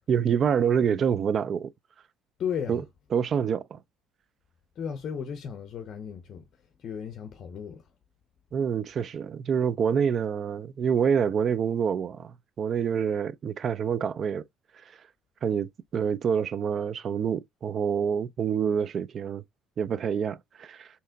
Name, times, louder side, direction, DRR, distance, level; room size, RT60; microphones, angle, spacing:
voice 1, 0.1-1.7 2.7-2.8 3.1-3.8 8.5-14.4 15.4-19.4 19.8-20.9, right 7 dB, 45° right, 0.3 m, -27 dB
voice 2, 2.4-2.8 4.8-7.9, left 7 dB, 50° left, 0.6 m, -35 dB
3.3 x 2.9 x 3.7 m
cardioid pair, 115°, 0 cm